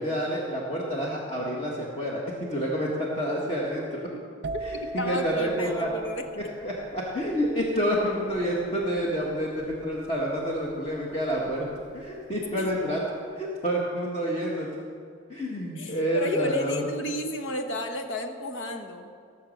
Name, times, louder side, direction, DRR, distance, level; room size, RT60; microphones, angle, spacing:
voice 1, 0.0-4.0 4.6-5.9 6.4-11.7 11.9-13.0 13.4-14.7 15.3-16.8, equal, 30° left, -4 dB, 1.6 m, -28 dB
sound 1, 4.4-12.0 12.3-12.8, right 1 dB, 60° right, 0.4 m, -41 dB
voice 2, 5.0-6.2 12.5-12.6 15.8-19.1, equal, 90° left, 5 dB, 1.3 m, -32 dB
17.5 x 7.3 x 6.5 m, 2.4 s
head